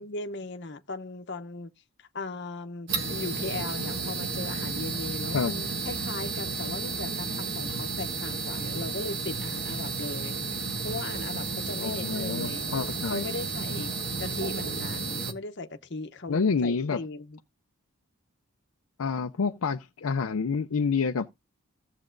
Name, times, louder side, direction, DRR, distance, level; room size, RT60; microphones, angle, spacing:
voice 1, 0.0-1.7 2.0-10.4 10.8-12.6 13.1-13.9 14.2-17.4, left 3 dB, 50° left, 0.8 m, -38 dB
sound 1, 2.9-15.3, right 4 dB, 50° right, 1.4 m, -32 dB
voice 2, 11.8-13.2 16.3-17.0 19.0-21.3, left 5 dB, 75° left, 0.5 m, -28 dB
15.5 x 7.2 x 2.6 m
head